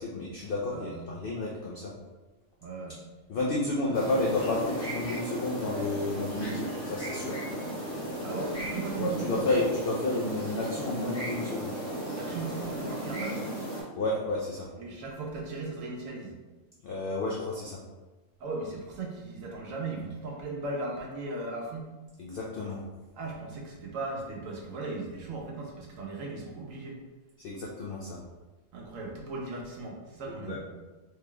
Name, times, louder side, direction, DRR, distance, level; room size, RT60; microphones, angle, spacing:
voice 1, 0.0-1.9 3.3-7.4 9.0-11.7 13.9-14.7 16.8-17.8 22.2-22.8 27.4-28.2 30.3-30.6, left 2 dB, 65° left, -3 dB, 0.5 m, -31 dB
voice 2, 0.7-1.1 2.6-3.0 3.9-4.0 8.2-9.4 12.1-13.4 14.8-16.4 18.4-21.9 23.2-27.0 28.7-30.6, right 3 dB, 80° right, -1 dB, 1.1 m, -37 dB
sound 1, 3.9-13.8, right 1 dB, 10° left, 1.2 m, -35 dB
3.8 x 3.2 x 2.2 m, 1.2 s
omnidirectional pair, 1.4 m